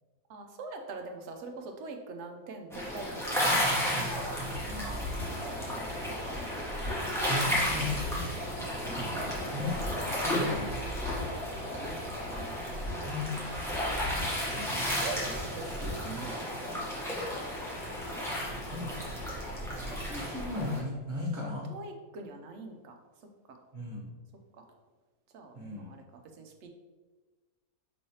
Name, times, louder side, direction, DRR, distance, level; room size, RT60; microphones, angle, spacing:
voice 1, 0.3-3.8 5.3-5.9 8.4-8.9 11.5-12.3 12.7-13.1 14.7-16.7 19.9-20.4 21.4-23.6 24.5-24.7 25.3-26.0 26.3-26.7, right 3 dB, 65° right, 3 dB, 0.7 m, -44 dB
sound 1, 2.7-20.8, equal, 5° left, 0.5 m, -33 dB
sound 2, 4.1-16.2, left 1 dB, 70° left, 1.5 m, -40 dB
voice 2, 4.7-5.5 7.3-8.3 9.4-11.2 13.0-13.3 14.5-14.8 18.7-18.8 19.7-21.7 23.7-24.1 25.5-25.9, left 2 dB, 35° right, -4 dB, 1.1 m, -37 dB
5.4 x 3.2 x 2.8 m, 1.3 s
omnidirectional pair, 1.6 m